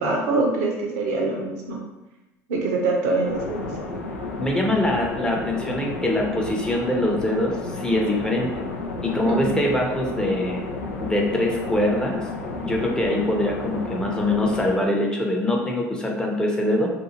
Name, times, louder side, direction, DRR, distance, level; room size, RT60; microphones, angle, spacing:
voice 1, 0.0-1.8 2.5-3.7 9.2-9.6, right 3 dB, 75° right, 0 dB, 0.7 m, -24 dB
sound 1, 3.2-14.7, left 3 dB, 85° left, 0.4 m, -32 dB
voice 2, 4.4-8.5 9.0-10.6 11.0-12.2 12.6-16.9, left 1 dB, 10° left, 0 dB, 0.7 m, -23 dB
2.6 x 2.4 x 2.7 m, 1.0 s
hypercardioid pair, 65°, 8 cm